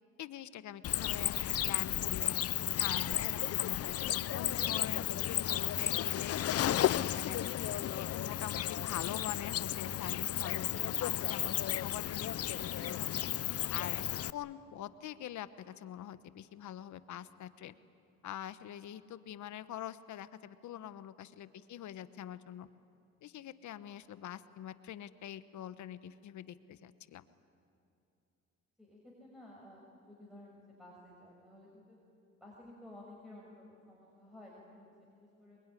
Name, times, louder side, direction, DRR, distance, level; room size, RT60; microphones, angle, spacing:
voice 1, 0.2-2.4 2.8-7.5 8.0-13.2 13.7-17.8 18.2-22.7 23.2-27.3, left 11 dB, 75° left, 13 dB, 1.1 m, -44 dB
Cricket, 0.8-14.3, left 12 dB, 50° left, 0.6 m, -33 dB
voice 2, 21.5-22.3 28.8-32.0 32.4-35.6, left 1 dB, ahead, -4 dB, 6.5 m, -55 dB
24.5 x 22.5 x 10.0 m, 2.7 s
cardioid pair, 90°, 30 cm